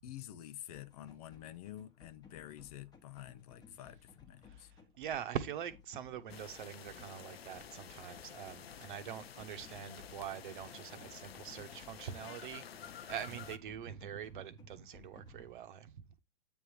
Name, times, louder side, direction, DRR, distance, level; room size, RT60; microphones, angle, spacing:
voice 1, 0.0-4.7, left 13 dB, 40° left, 0.6 m, -49 dB
sound 1, 0.7-15.5, left 6 dB, 15° left, 1.2 m, -60 dB
voice 2, 5.0-15.9, right 9 dB, 55° right, 1.2 m, -44 dB
sound 2, 6.3-13.6, left 8 dB, 80° left, 0.8 m, -51 dB
8.7 x 3.6 x 4.9 m
hypercardioid pair, 120°, 30 cm